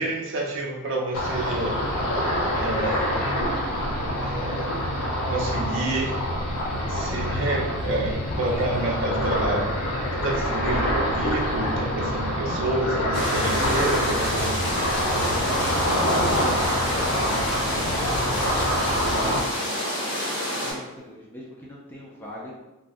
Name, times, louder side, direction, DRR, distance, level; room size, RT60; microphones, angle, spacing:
voice 1, 0.0-1.8 2.6-3.1 4.2-4.7 5.3-6.2 6.9-9.7 10.1-14.8, right 2 dB, 55° right, 0 dB, 0.5 m, -28 dB
Ocean, 1.1-19.4, equal, 90° left, 0.5 m, -26 dB
sound 1, 13.1-20.7, equal, 50° left, 1.1 m, -28 dB
voice 2, 15.6-20.1 20.5-22.5, left 1 dB, 10° left, -4 dB, 0.4 m, -41 dB
2.6 x 2.1 x 3.4 m, 1.0 s
head